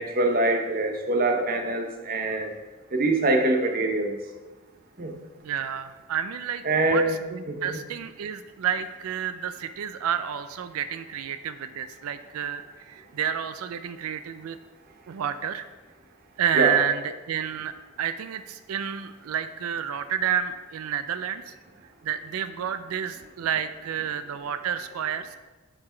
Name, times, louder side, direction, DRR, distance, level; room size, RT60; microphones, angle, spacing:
voice 1, 0.0-2.5 2.9-4.1 5.0-5.1 6.6-7.2 7.5-7.8 16.5-16.8, right 2 dB, 40° right, 4 dB, 0.8 m, -24 dB
voice 2, 5.4-14.6 15.1-15.7 16.4-17.7 18.0-21.5 22.0-25.4, right 8 dB, 80° right, 11 dB, 0.4 m, -30 dB
7.5 x 4.7 x 4.4 m, 1.2 s
head